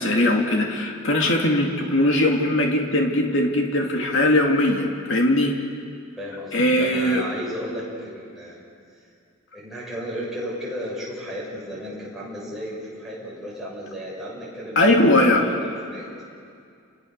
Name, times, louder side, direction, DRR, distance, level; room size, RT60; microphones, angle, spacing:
voice 1, 0.0-5.5 6.5-7.2 14.8-15.4, left 1 dB, 65° left, 1 dB, 2.5 m, -20 dB
voice 2, 6.2-8.6 9.5-16.1, equal, ahead, -7 dB, 7.2 m, -34 dB
29.5 x 22.5 x 6.7 m, 2.3 s
head